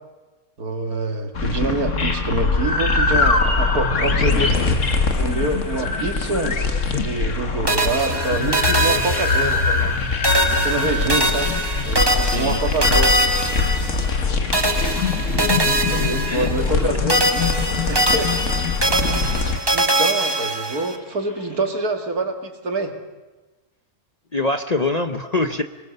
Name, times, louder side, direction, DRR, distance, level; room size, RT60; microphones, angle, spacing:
voice 1, 0.6-4.7 5.2-6.6 6.9-10.0 10.5-11.5 11.8-13.2 14.8-14.9 15.9-17.2 17.9-18.6 19.7-22.9, right 2 dB, 75° right, 5 dB, 2.7 m, -26 dB
sound 1, 1.3-19.6, left 4 dB, 55° left, 1.8 m, -22 dB
Bird vocalization bird call bird song, 1.9-21.7, left 3 dB, 70° left, 3.0 m, -39 dB
sound 2, 7.7-10.0 10.2-14.2 14.5-16.8 17.1-21.0, right 1 dB, 15° right, 1.5 m, -22 dB
voice 2, 12.2-12.6 16.3-16.5 24.3-25.6, left 2 dB, 35° left, 7 dB, 0.8 m, -23 dB
26.0 x 20.0 x 6.8 m, 1.2 s
omnidirectional pair, 1.6 m